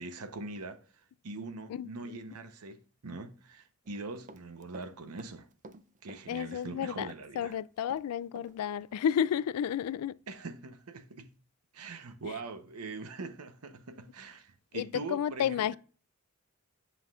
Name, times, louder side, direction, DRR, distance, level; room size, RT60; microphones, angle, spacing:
voice 1, 0.0-5.5 6.0-7.6 10.3-11.3 11.7-15.8, right 3 dB, 90° right, 0.8 m, -43 dB
voice 2, 1.7-2.2 6.3-7.1 7.4-10.1 14.7-15.8, left 9 dB, 85° left, 0.3 m, -31 dB
Run, 3.9-4.9 5.2-6.7 7.0-8.5 8.8-8.9, right 3 dB, 35° right, 0.4 m, -51 dB
9.8 x 5.7 x 2.4 m
head